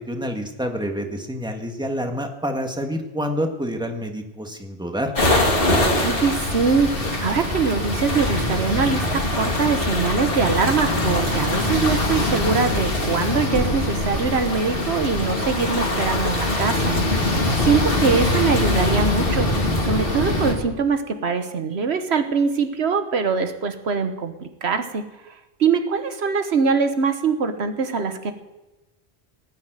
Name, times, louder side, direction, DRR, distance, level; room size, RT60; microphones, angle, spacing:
voice 1, 0.0-5.1, equal, 5° right, 3 dB, 1.6 m, -28 dB
sound 1, 5.1-20.5, left 1 dB, 60° left, 2.5 m, -22 dB
voice 2, 6.0-16.9 17.6-19.5 19.8-25.0 25.6-28.3, right 5 dB, 85° right, 8 dB, 1.4 m, -23 dB
18.5 x 7.3 x 9.1 m, 1.0 s
omnidirectional pair, 1.1 m